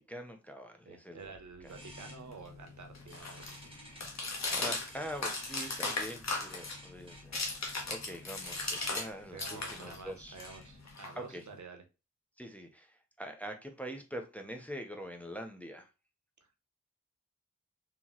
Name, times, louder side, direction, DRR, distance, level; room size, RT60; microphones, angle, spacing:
voice 1, 0.0-1.3 1.6-1.7 4.1-10.4 11.2-11.4 12.4-15.9, equal, 5° left, 0.5 m, -44 dB
voice 2, 0.9-3.7 9.3-11.8, right 4 dB, 80° right, 0.7 m, -49 dB
sound 1, 1.2-10.9, right 1 dB, 20° right, 1.0 m, -55 dB
sound 2, 1.7-9.1 9.4-11.6, left 3 dB, 65° left, 0.9 m, -38 dB
2.9 x 2.8 x 2.2 m
wide cardioid pair, 50°, 29 cm